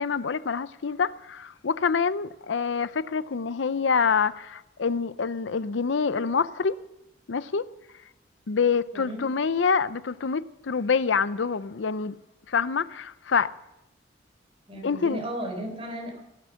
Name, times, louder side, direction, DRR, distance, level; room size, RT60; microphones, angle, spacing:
voice 1, 0.0-6.8 7.3-7.7 8.5-12.1 12.5-13.5 14.8-15.2, left 5 dB, 80° left, 0.6 m, -26 dB
voice 2, 14.7-16.2, right 1 dB, 30° right, 3.9 m, -35 dB
17.0 x 12.0 x 6.3 m
head